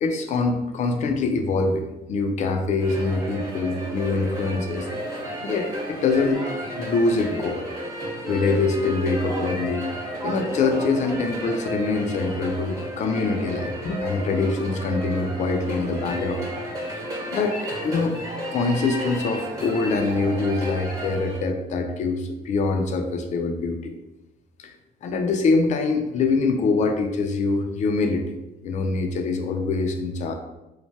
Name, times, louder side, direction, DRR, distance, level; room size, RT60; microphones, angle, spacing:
voice 1, 0.0-4.9 5.4-6.4 6.8-7.6 8.3-9.9 10.2-16.4 17.3-18.2 18.5-23.9 24.6-24.7 25.0-28.4 28.6-30.3, left 3 dB, 45° left, 5 dB, 0.4 m, -24 dB
sound 1, 2.8-21.4, equal, 20° right, 0.9 m, -33 dB
3.1 x 2.1 x 2.7 m, 0.99 s
cardioid pair, 110°, 17 cm